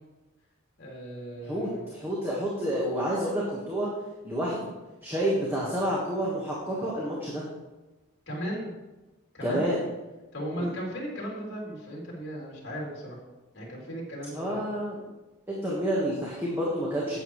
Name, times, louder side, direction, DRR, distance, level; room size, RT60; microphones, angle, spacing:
voice 1, 0.8-1.8 8.3-8.7 9.3-9.6 10.3-13.2 13.5-14.6, equal, 55° left, -3 dB, 3.0 m, -36 dB
voice 2, 1.4-3.9 4.2-4.7 5.0-7.4 9.4-9.8 10.6-10.8 14.3-15.0 15.5-17.2, equal, 10° right, -6 dB, 1.4 m, -29 dB
11.0 x 8.2 x 3.2 m, 1.1 s
head